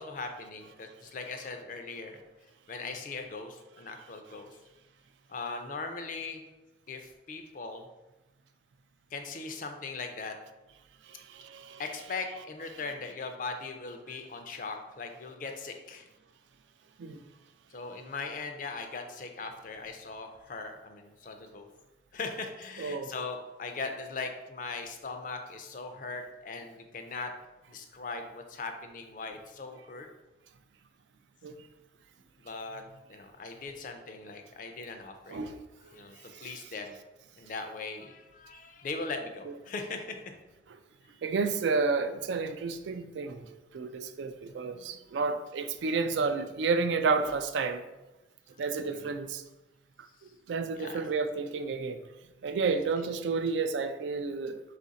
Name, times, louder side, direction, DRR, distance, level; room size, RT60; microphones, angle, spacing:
voice 1, 0.0-2.2 2.7-4.5 5.3-6.4 6.9-7.9 9.1-10.4 11.8-16.1 17.7-21.7 22.1-27.3 27.7-30.1 32.4-32.8 33.1-35.4 35.9-36.9 37.4-40.2 48.8-49.1 50.8-51.0 52.6-52.7, left 4 dB, 45° left, 5 dB, 0.4 m, -39 dB
voice 2, 11.0-11.8 17.0-17.2 22.8-23.1 31.4-31.7 35.3-35.6 35.8-36.0 36.3-36.5 39.5-39.6 41.2-47.8 48.6-49.4 50.5-52.0 52.4-54.6, right 4 dB, 75° right, 9 dB, 0.3 m, -31 dB
4.0 x 2.5 x 4.0 m, 1.0 s
head